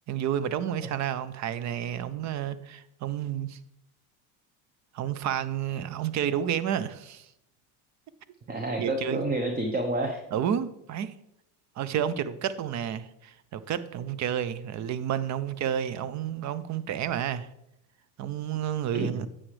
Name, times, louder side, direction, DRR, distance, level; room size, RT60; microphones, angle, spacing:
voice 1, 0.1-3.6 4.9-7.3 8.8-9.2 10.3-11.1 11.8-17.5 18.2-19.3, right 9 dB, 35° right, 0.7 m, -30 dB
voice 2, 8.5-10.2 18.9-19.2, right 2 dB, 20° right, 1.0 m, -29 dB
9.7 x 7.7 x 3.3 m
supercardioid pair, 105°, 47 cm